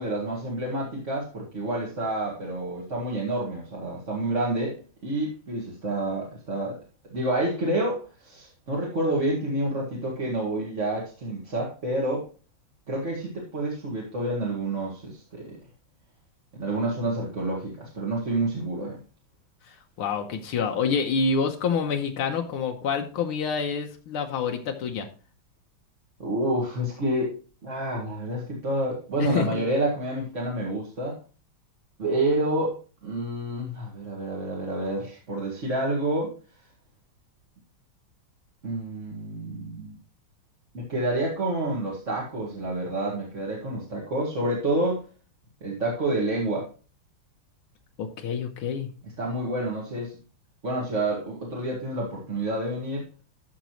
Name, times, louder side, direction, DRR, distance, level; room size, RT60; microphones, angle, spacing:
voice 1, 0.0-6.8 7.1-12.2 12.9-15.6 16.6-19.0 26.2-31.2 32.0-32.7 33.0-36.3 38.6-40.0 40.7-45.0 45.6-46.7 49.0-50.2 50.6-53.0, right 1 dB, 35° right, -4 dB, 2.1 m, -28 dB
voice 2, 20.0-25.1 29.2-29.6 48.0-48.9, left 5 dB, 85° left, 3 dB, 1.8 m, -27 dB
13.0 x 6.0 x 3.0 m, 0.36 s
omnidirectional pair, 2.3 m